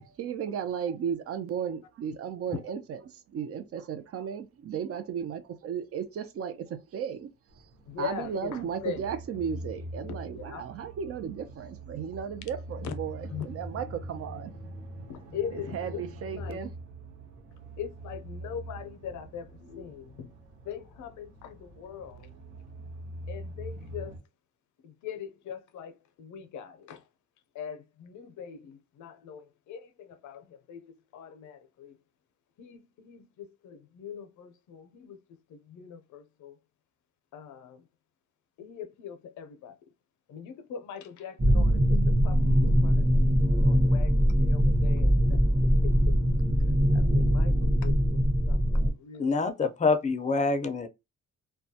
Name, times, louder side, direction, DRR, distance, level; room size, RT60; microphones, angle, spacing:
voice 1, 0.2-7.3 8.0-14.5 15.5-16.7, right 7 dB, 50° right, 0.5 m, -35 dB
sound 1, 7.5-24.2, right 1 dB, 75° right, 0.9 m, -43 dB
voice 2, 7.9-9.0 10.3-10.6 12.8-12.9 13.3-13.5 15.1-16.0 16.3-16.6 17.8-20.3 20.7-22.3 23.3-24.2 24.8-27.0 27.5-31.9 32.6-35.2 35.5-36.5 37.3-37.8 38.6-39.7 40.3-46.2 46.9-49.7, left 8 dB, 75° left, 0.6 m, -41 dB
sound 2, 41.4-48.9, equal, 20° right, 0.8 m, -22 dB
voice 3, 49.2-50.9, left 4 dB, 25° left, 0.5 m, -26 dB
2.3 x 2.2 x 2.7 m
cardioid pair, 90°, 30 cm